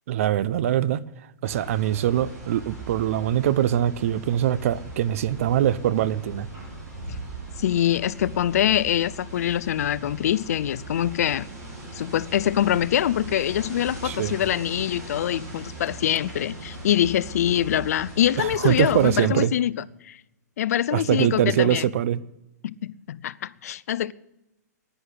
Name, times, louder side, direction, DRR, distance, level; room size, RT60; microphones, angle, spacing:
voice 1, 0.1-1.0 1.4-6.5 14.0-14.4 18.4-19.5 20.9-22.2, right 11 dB, 50° right, 0.7 m, -23 dB
sound 1, 1.4-19.2, right 2 dB, 25° right, 6.9 m, -39 dB
voice 2, 7.6-11.5 11.9-20.2 20.6-21.9 22.6-24.1, left 11 dB, 60° left, 0.5 m, -24 dB
10.5 x 10.0 x 9.9 m
hypercardioid pair, 150°, 9 cm